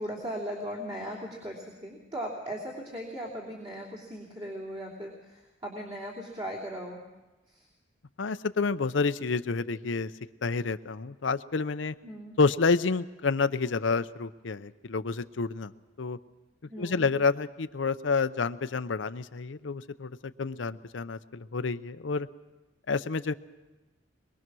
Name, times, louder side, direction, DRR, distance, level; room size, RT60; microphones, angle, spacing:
voice 1, 0.0-7.0 7.5-7.7 12.0-12.4 16.7-17.1, equal, 35° right, -4 dB, 3.1 m, -38 dB
voice 2, 8.2-10.1 10.4-11.9 12.4-15.7 16.0-16.2 16.8-20.1 20.4-22.3 22.9-23.3, left 4 dB, 85° left, 12 dB, 0.6 m, -29 dB
23.0 x 22.5 x 6.2 m, 1.1 s
head